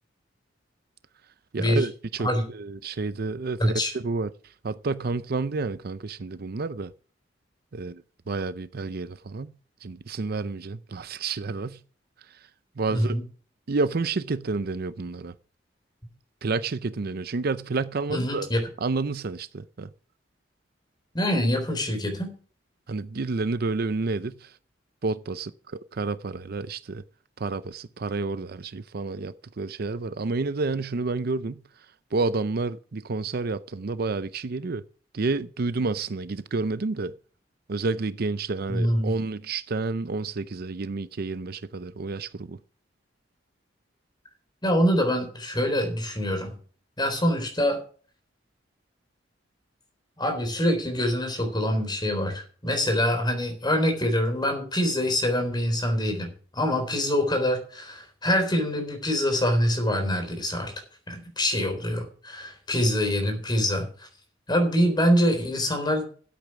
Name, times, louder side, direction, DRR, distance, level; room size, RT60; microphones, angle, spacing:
voice 1, 1.5-2.3 2.6-4.3 4.6-6.9 7.7-8.0 8.3-9.5 9.8-11.8 12.8-13.2 13.7-15.3 16.4-18.5 18.8-19.9 22.9-24.4 25.0-25.5 26.0-27.0 27.4-31.6 32.1-34.8 35.1-37.1 37.7-42.6, right 3 dB, 55° right, 0.6 m, -29 dB
voice 2, 3.6-3.9 12.9-13.2 18.1-18.6 21.1-22.3 38.7-39.2 44.6-46.6 47.0-47.8 50.2-60.7 61.1-64.1 64.5-66.0, equal, 25° left, 3.9 m, -25 dB
12.5 x 8.4 x 6.0 m
head